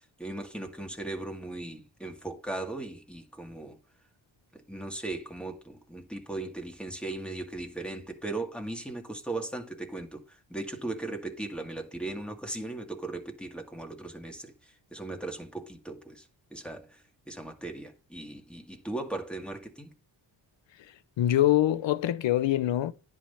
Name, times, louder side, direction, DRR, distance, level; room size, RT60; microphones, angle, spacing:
voice 1, 0.2-3.8 4.5-10.2 10.5-14.5 14.9-16.2 16.5-16.9 17.3-19.9, right 2 dB, ahead, 2.1 m, -37 dB
voice 2, 20.8-22.9, left 13 dB, 70° left, 0.8 m, -25 dB
10.0 x 3.8 x 6.9 m
cardioid pair, 70°, 46 cm